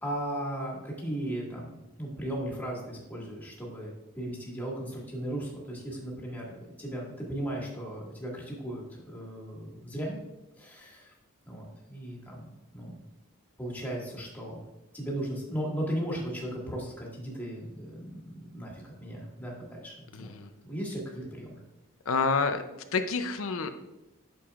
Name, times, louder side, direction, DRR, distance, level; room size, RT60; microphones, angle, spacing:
voice 1, 0.0-10.2 10.6-11.1 11.5-12.9 13.6-14.6 14.9-20.3 20.6-21.6, right 1 dB, 10° left, -3 dB, 1.9 m, -36 dB
voice 2, 20.1-20.5 22.1-22.6 22.9-23.7, left 4 dB, 70° left, 8 dB, 0.6 m, -28 dB
8.6 x 6.9 x 2.4 m, 1.0 s
head